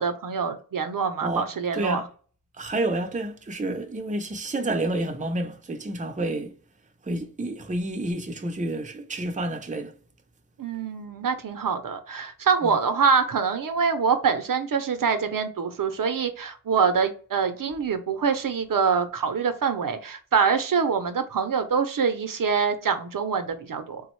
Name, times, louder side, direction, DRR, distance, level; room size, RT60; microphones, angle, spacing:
voice 1, 0.0-2.0 10.6-24.0, right 6 dB, 70° right, 0.6 m, -25 dB
voice 2, 1.7-2.0 2.6-6.5 7.1-9.9 12.6-12.8, right 2 dB, 20° right, 0.5 m, -29 dB
3.5 x 2.0 x 3.0 m
wide cardioid pair, 60°, 35 cm